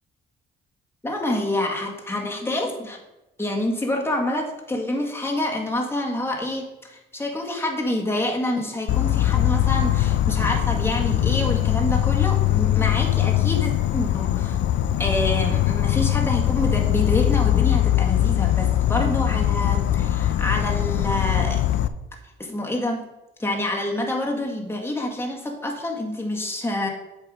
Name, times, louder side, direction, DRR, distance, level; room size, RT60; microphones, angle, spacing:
voice 1, 1.0-3.0 3.4-14.6 15.0-21.6 22.4-23.0 23.4-26.9, left 1 dB, 10° left, 0 dB, 1.7 m, -27 dB
Insect, 8.9-21.9, left 12 dB, 70° left, 0.5 m, -21 dB
7.8 x 4.5 x 4.9 m, 0.96 s
cardioid pair, 90°, 20 cm